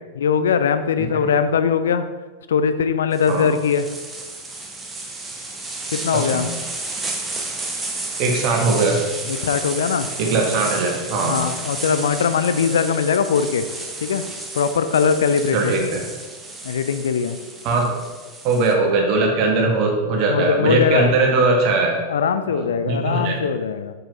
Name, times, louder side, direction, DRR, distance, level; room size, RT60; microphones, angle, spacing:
voice 1, 0.1-2.0 2.5-3.9 5.9-6.5 9.3-10.1 11.2-13.6 14.0-14.2 14.5-15.7 16.6-17.4 20.3-21.1 22.1-23.9, left 6 dB, 65° left, 10 dB, 0.4 m, -20 dB
voice 2, 1.0-1.3 3.3-3.5 6.1-6.5 8.2-9.0 10.2-11.4 15.5-16.0 17.6-17.9 18.4-22.0 22.5-23.4, right 3 dB, 40° right, 1 dB, 1.6 m, -20 dB
sound 1, 3.1-18.7, right 2 dB, 15° right, 1.0 m, -32 dB
7.4 x 6.8 x 2.9 m, 1.3 s
figure-of-eight pair, 90°, 0 cm